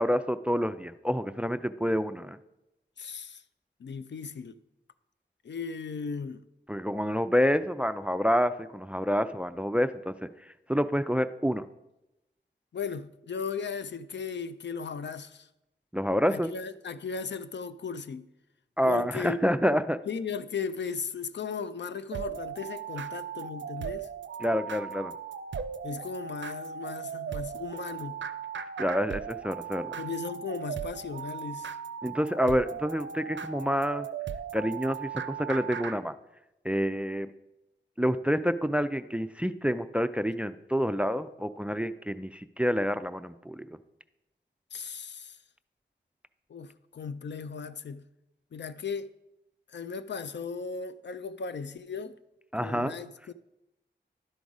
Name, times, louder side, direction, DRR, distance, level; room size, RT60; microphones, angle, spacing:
voice 1, 0.0-2.4 6.7-10.1 10.7-11.7 15.9-16.5 18.8-20.0 24.4-25.1 28.8-30.0 32.0-34.1 34.5-36.1 36.6-37.3 38.0-43.7 52.5-52.9, equal, 5° right, 0.3 m, -28 dB
voice 2, 3.0-3.4 3.8-4.6 5.4-6.4 12.7-15.5 16.3-18.3 18.8-19.4 20.1-24.1 25.8-28.2 30.0-31.8 44.7-45.4 46.5-48.0 48.5-49.1 49.7-52.2 52.6-53.3, left 5 dB, 70° left, 0.4 m, -36 dB
sound 1, 22.1-36.0, right 7 dB, 80° right, 0.4 m, -37 dB
11.5 x 3.9 x 4.8 m
wide cardioid pair, 60°, 19 cm